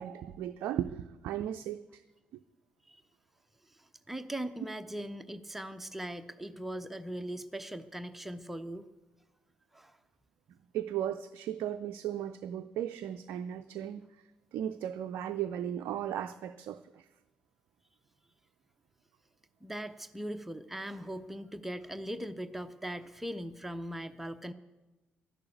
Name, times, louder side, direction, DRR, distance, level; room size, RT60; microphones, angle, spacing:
voice 1, 0.0-2.0 10.7-14.0 14.5-17.1, right 10 dB, 55° right, 0.4 m, -36 dB
voice 2, 3.7-8.9 9.7-10.0 19.6-24.5, right 1 dB, 5° right, 0.8 m, -40 dB
12.0 x 11.5 x 8.2 m
figure-of-eight pair, 45°, 5 cm